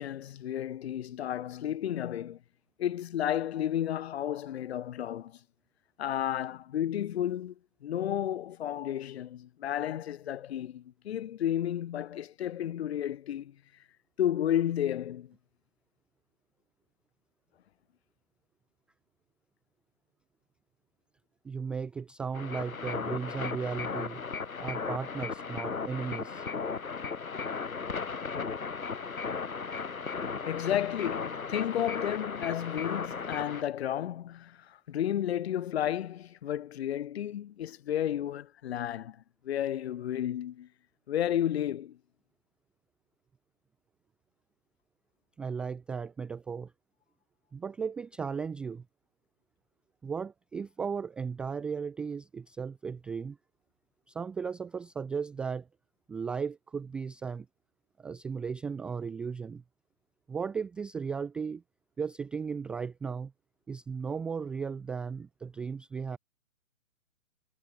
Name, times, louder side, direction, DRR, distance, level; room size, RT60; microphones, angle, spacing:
voice 1, 0.0-2.4 2.8-5.4 6.0-13.6 14.2-15.3 30.4-40.7 41.1-42.0, left 11 dB, 45° left, 7.5 m, -32 dB
voice 2, 21.4-24.2 24.6-26.4 45.4-46.7 47.5-48.8 50.0-53.4 54.1-55.7 56.1-57.5 58.0-59.6 60.3-61.6 62.0-63.3 63.7-66.2, right 6 dB, ahead, 0.5 m, -36 dB
sound 1, 22.3-33.6, left 5 dB, 75° left, 6.5 m, -36 dB
figure-of-eight pair, 135°, 42 cm